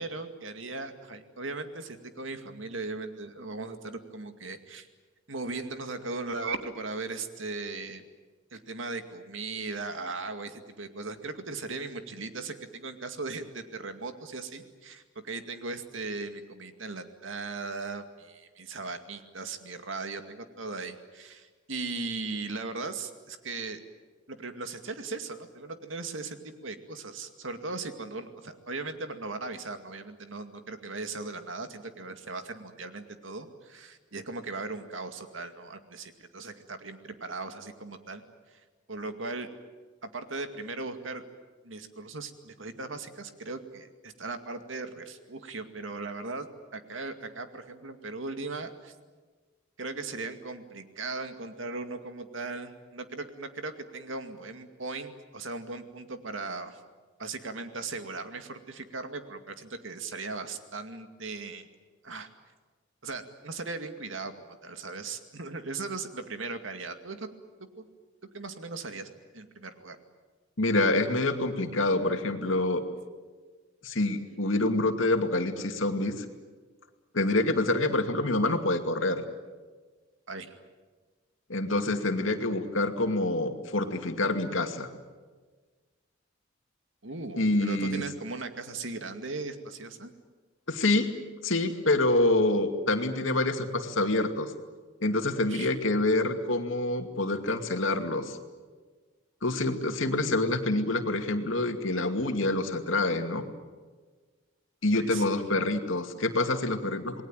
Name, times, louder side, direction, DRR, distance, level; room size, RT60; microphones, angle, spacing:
voice 1, 0.0-4.9 5.3-8.0 8.5-23.8 24.3-38.2 38.5-38.6 38.9-39.5 40.0-41.2 41.6-48.9 49.8-56.8 57.2-61.7 62.0-62.3 63.0-67.3 67.8-67.9 68.3-69.1 69.3-70.0 80.3-80.5 87.0-90.1 95.4-95.7 104.9-105.7, right 3 dB, 75° right, 8 dB, 2.3 m, -38 dB
voice 2, 70.6-72.8 73.8-76.3 77.1-79.2 81.5-84.9 87.4-88.0 90.7-91.1 91.4-94.5 95.0-98.4 99.4-103.4 104.8-107.2, left 2 dB, 80° left, 6 dB, 2.5 m, -26 dB
28.0 x 20.5 x 9.0 m, 1.4 s
head